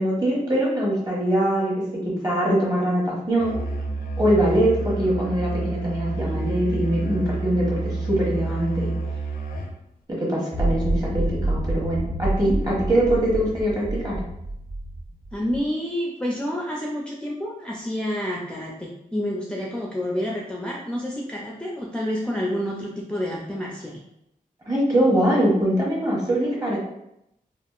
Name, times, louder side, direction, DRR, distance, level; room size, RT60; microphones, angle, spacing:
voice 1, 0.0-3.5 4.2-8.9 10.1-14.2 24.7-26.8, right 1 dB, 25° right, -5 dB, 1.2 m, -23 dB
Musical instrument, 3.4-9.8, right 2 dB, 85° left, 0.5 m, -29 dB
sound 1, 10.5-15.6, right 1 dB, 55° right, 0.9 m, -27 dB
voice 2, 15.3-24.0, equal, 5° left, -3 dB, 0.4 m, -29 dB
3.5 x 2.5 x 2.4 m, 0.81 s
wide cardioid pair, 105°, 15 cm